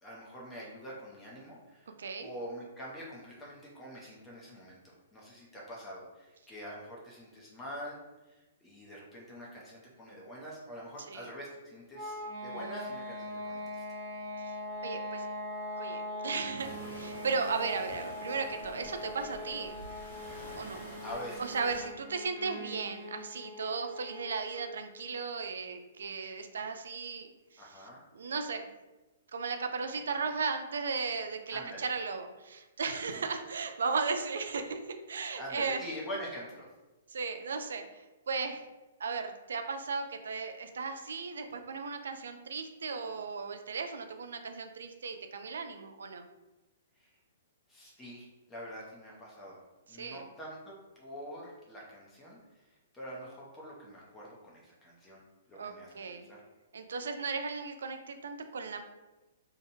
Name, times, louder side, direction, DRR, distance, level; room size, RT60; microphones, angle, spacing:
voice 1, 0.0-8.0 8.3-13.8 21.0-21.5 27.6-28.0 31.5-31.9 35.4-36.7 47.0-47.1 47.7-49.6 49.9-52.6 52.9-55.2 55.5-56.4, equal, 10° left, -5 dB, 0.5 m, -45 dB
voice 2, 2.0-2.3 11.1-11.3 14.8-15.2 15.8-19.8 20.6-20.9 21.4-27.3 27.5-27.6 28.1-28.7 29.3-35.8 37.1-38.6 39.0-46.3 49.9-50.2 55.5-56.3 56.7-58.8, right 4 dB, 90° right, 6 dB, 0.3 m, -36 dB
sound 1, 11.9-24.7, left 1 dB, 10° right, 1.1 m, -41 dB
sound 2, 16.6-21.9, left 1 dB, 45° left, 1.2 m, -48 dB
2.8 x 2.1 x 2.7 m, 1.1 s
hypercardioid pair, 165°, 0 cm